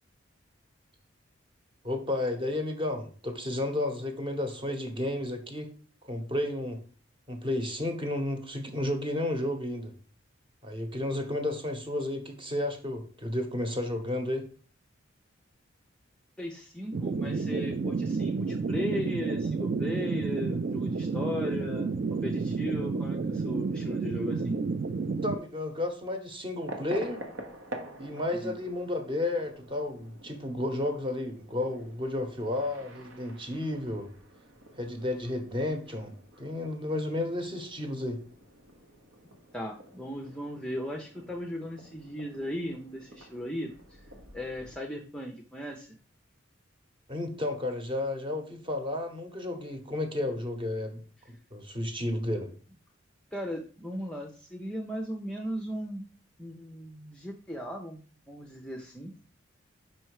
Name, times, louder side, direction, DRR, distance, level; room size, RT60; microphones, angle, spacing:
voice 1, 1.8-5.7 6.0-6.8 7.3-9.9 10.6-14.5 25.2-27.2 28.0-34.1 34.8-38.2 47.1-51.0 51.3-52.5, left 1 dB, 25° right, 5 dB, 1.0 m, -32 dB
voice 2, 16.4-21.9 22.2-24.6 28.3-28.6 39.5-44.1 44.3-46.0 53.3-56.0 56.4-58.0 58.3-59.1, equal, 5° left, 1 dB, 0.5 m, -37 dB
sound 1, 16.9-25.4, right 4 dB, 50° right, 0.4 m, -30 dB
sound 2, 26.6-44.8, right 1 dB, 80° right, 1.2 m, -48 dB
5.4 x 4.4 x 4.7 m, 0.42 s
head